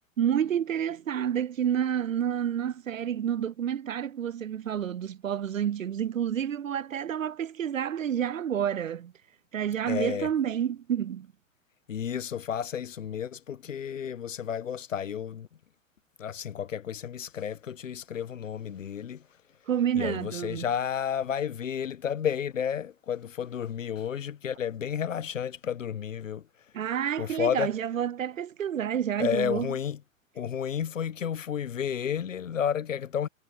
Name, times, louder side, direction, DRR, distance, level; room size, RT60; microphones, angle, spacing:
voice 1, 0.2-9.1 9.5-11.3 19.7-20.7 26.7-29.7, right 9 dB, 70° right, 0.7 m, -29 dB
voice 2, 9.8-10.3 11.9-15.5 16.2-19.2 19.9-26.4 27.2-27.7 29.2-30.0 30.3-33.3, left 8 dB, 65° left, 1.1 m, -31 dB
figure-of-eight pair, 105°, 41 cm